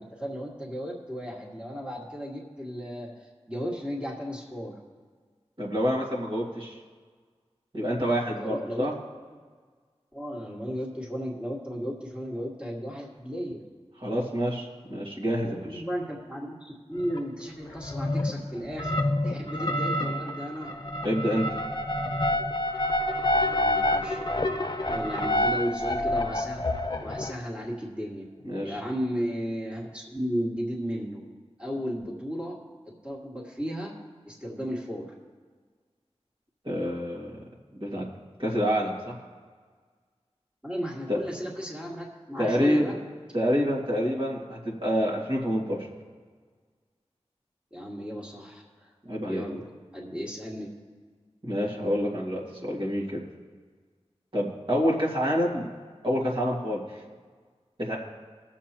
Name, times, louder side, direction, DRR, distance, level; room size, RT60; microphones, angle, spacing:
voice 1, 0.0-3.1 3.5-4.8 8.4-8.9 10.1-13.6 15.4-19.0 19.2-20.7 23.4-24.2 24.9-26.6 27.0-28.3 28.6-31.2 31.6-32.6 32.9-33.9 34.3-35.1 40.6-43.0 47.7-48.9 49.3-50.7, equal, 10° right, -4 dB, 2.1 m, -34 dB
voice 2, 5.6-6.8 7.7-8.9 14.0-15.8 21.0-21.4 28.4-28.8 36.6-37.4 37.7-38.1 38.4-39.1 41.1-41.2 42.4-42.9 43.3-45.9 49.0-49.4 51.4-53.2 54.3-55.7 56.0-56.8 57.8-58.0, equal, 50° right, -5 dB, 2.3 m, -27 dB
sound 1, 17.1-17.2 17.8-18.4 18.7-27.3, left 1 dB, 40° left, 0.8 m, -28 dB
20.0 x 7.3 x 3.0 m, 1.5 s
wide cardioid pair, 50°, 11 cm